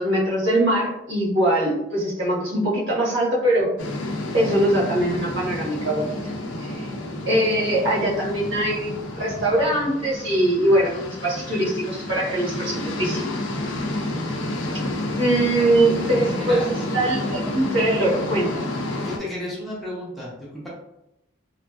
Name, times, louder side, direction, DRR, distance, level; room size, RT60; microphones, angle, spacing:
voice 1, 0.0-3.7 4.3-6.1 6.6-6.9 7.2-13.2 15.2-18.5, right 1 dB, 85° right, -7 dB, 1.4 m, -22 dB
sound 1, 3.8-19.2, left 1 dB, 80° left, 0.5 m, -30 dB
voice 2, 16.0-16.7 19.0-20.7, left 1 dB, ahead, -7 dB, 0.6 m, -33 dB
3.1 x 2.4 x 2.3 m, 0.87 s
head